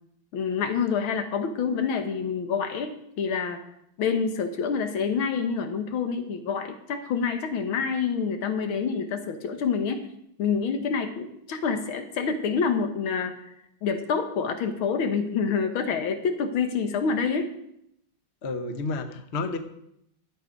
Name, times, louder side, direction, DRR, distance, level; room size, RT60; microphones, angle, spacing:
voice 1, 0.3-3.6 4.0-10.0 10.4-13.5 13.8-17.5, left 6 dB, 80° left, 7 dB, 2.0 m, -27 dB
voice 2, 18.4-19.6, left 3 dB, 45° left, 7 dB, 1.0 m, -30 dB
12.0 x 8.2 x 5.2 m, 0.75 s
omnidirectional pair, 2.2 m